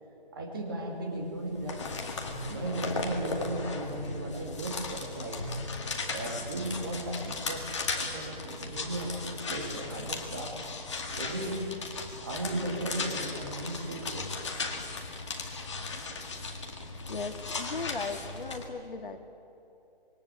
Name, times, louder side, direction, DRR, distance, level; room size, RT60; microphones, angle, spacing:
voice 1, 0.3-1.8 2.5-5.5 6.1-7.7 8.0-10.6 11.2-11.7 12.2-14.4, right 1 dB, 20° right, 1 dB, 2.6 m, -36 dB
sound 1, 1.4-18.6, left 3 dB, 30° left, 2.1 m, -37 dB
voice 2, 17.1-19.2, left 4 dB, 60° left, 5 dB, 2.1 m, -37 dB
26.5 x 22.5 x 8.4 m, 2.9 s
hypercardioid pair, 175°, 30 cm